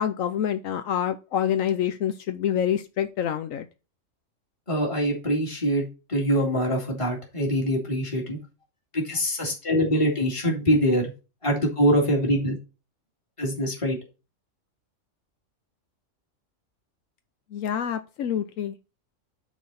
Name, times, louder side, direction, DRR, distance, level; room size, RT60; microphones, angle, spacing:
voice 1, 0.0-3.7 17.5-18.7, left 9 dB, 85° left, 1.1 m, -27 dB
voice 2, 4.7-8.4 8.9-11.1 11.4-12.6 13.4-14.0, equal, 25° left, 2.3 m, -24 dB
9.3 x 4.6 x 4.2 m
omnidirectional pair, 1.3 m